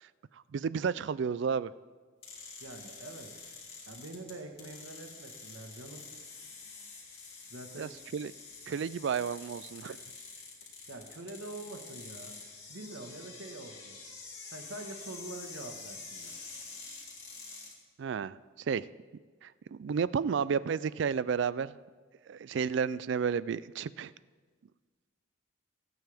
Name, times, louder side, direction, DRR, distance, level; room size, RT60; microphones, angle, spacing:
voice 1, 0.5-1.7 7.8-8.3 8.7-10.0 18.0-18.4 18.7-18.9 19.4-21.8 22.3-24.1, right 6 dB, 65° right, 18 dB, 0.3 m, -32 dB
sound 1, 2.2-17.7, left 4 dB, 30° left, 2.8 m, -47 dB
voice 2, 2.6-3.3 3.9-6.1 7.5-8.0 10.9-12.4 12.7-13.9 14.5-16.4, right 2 dB, 80° right, 4 dB, 1.5 m, -45 dB
21.5 x 9.2 x 3.5 m, 1.5 s
head